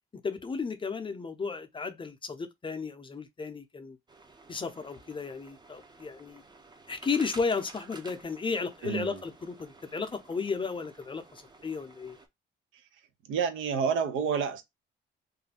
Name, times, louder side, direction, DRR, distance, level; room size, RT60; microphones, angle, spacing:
voice 1, 0.2-4.0 4.5-6.4 6.9-12.2, left 4 dB, 25° left, 0.6 m, -34 dB
sound 1, 4.1-12.3, right 3 dB, 20° right, 0.5 m, -53 dB
voice 2, 8.8-9.2 13.3-14.6, right 6 dB, 80° right, 0.6 m, -29 dB
2.5 x 2.2 x 3.3 m
cardioid pair, 90°, 20 cm